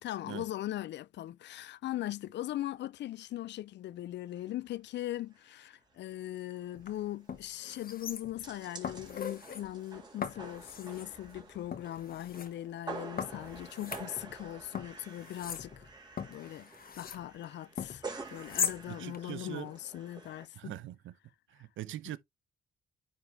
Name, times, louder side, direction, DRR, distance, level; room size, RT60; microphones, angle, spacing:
voice 1, 0.0-15.9 16.3-16.7 17.0-18.0 18.3-20.7, left 13 dB, 65° left, 0.4 m, -40 dB
sound 1, 4.3-4.5 4.8-4.9 5.3-5.6 5.9-6.0 6.3-20.5, right 3 dB, 20° right, 2.8 m, -49 dB
sound 2, 6.7-6.9 7.3-8.5 8.8-9.6 10.2-11.1 11.7-12.5 13.2-14.5 14.7-17.2 17.8-18.8 19.1-19.2, left 7 dB, 50° left, 1.4 m, -39 dB
voice 2, 18.9-19.7 20.5-21.1 21.5-22.2, right 13 dB, 75° right, 0.7 m, -42 dB
10.0 x 3.6 x 3.1 m
cardioid pair, 90°, 20 cm